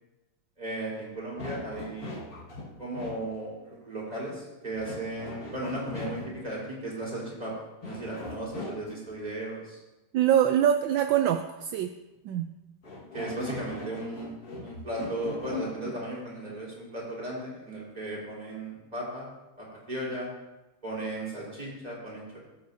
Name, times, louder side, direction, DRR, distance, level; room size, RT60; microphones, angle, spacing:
voice 1, 0.6-2.2 2.8-7.5 7.8-9.8 13.1-14.3 14.6-19.3 19.6-20.3 20.8-22.4, right 1 dB, 15° right, -5 dB, 4.1 m, -36 dB
sound 1, 1.4-3.3 4.8-6.5 7.8-9.1 12.8-16.1, left 2 dB, 45° left, 2.0 m, -40 dB
voice 2, 10.1-11.9 12.2-12.5, right 10 dB, 75° right, 7 dB, 1.2 m, -24 dB
20.5 x 8.5 x 2.7 m, 1.0 s
omnidirectional pair, 2.4 m